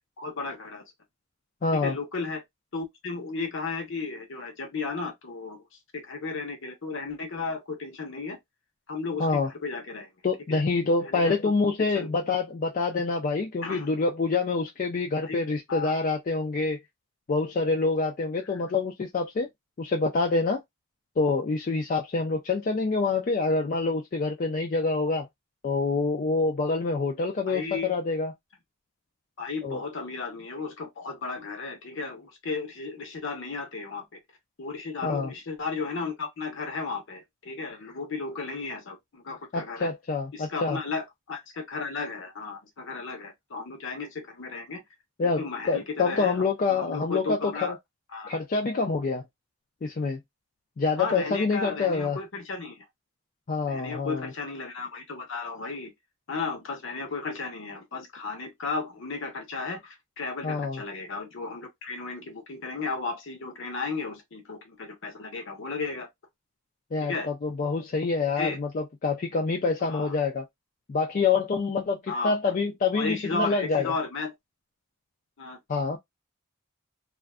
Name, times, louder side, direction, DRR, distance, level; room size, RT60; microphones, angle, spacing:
voice 1, 0.2-0.8 1.7-2.4 2.7-5.6 5.9-8.4 8.9-10.1 10.5-10.6 11.0-11.4 11.8-12.1 13.6-13.9 15.2-15.4 15.7-15.9 17.6-17.7 18.4-18.6 27.5-27.9 29.4-34.2 34.6-39.9 40.3-44.8 45.2-46.4 46.7-47.8 48.1-48.3 51.0-52.8 53.7-55.9 56.3-66.1 67.0-67.3 68.4-68.6 69.8-70.1 72.1-72.5 72.9-74.3 75.4-75.6, left 4 dB, 60° left, 0.8 m, -34 dB
voice 2, 1.6-2.0 9.2-9.5 10.2-16.8 17.3-19.5 19.8-20.6 21.2-25.3 25.6-28.3 29.6-29.8 35.0-35.3 39.5-40.8 45.2-47.7 48.3-49.2 49.8-50.2 50.8-52.2 53.5-54.3 60.4-60.8 66.9-70.4 70.9-73.9 75.7-76.0, left 4 dB, 40° left, 0.3 m, -26 dB
2.5 x 2.2 x 2.3 m
head